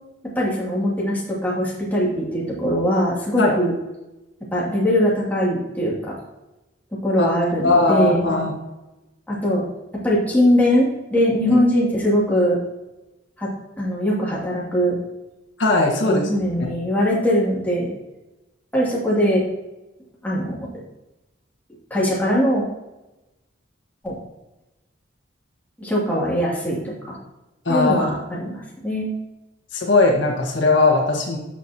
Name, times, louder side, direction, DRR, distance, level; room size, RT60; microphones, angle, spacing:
voice 1, 0.3-3.7 4.5-6.1 7.0-8.3 9.3-9.6 10.0-12.6 13.4-13.5 13.8-15.0 16.0-17.9 18.7-19.4 20.2-20.6 21.9-22.6 24.0-24.1 25.8-27.2 27.7-29.1, equal, 10° left, -6 dB, 2.7 m, -21 dB
voice 2, 7.6-8.5 11.5-11.6 15.6-16.3 27.6-28.1 29.7-31.4, left 3 dB, 70° left, -1 dB, 1.6 m, -19 dB
13.0 x 6.1 x 2.9 m, 0.99 s
head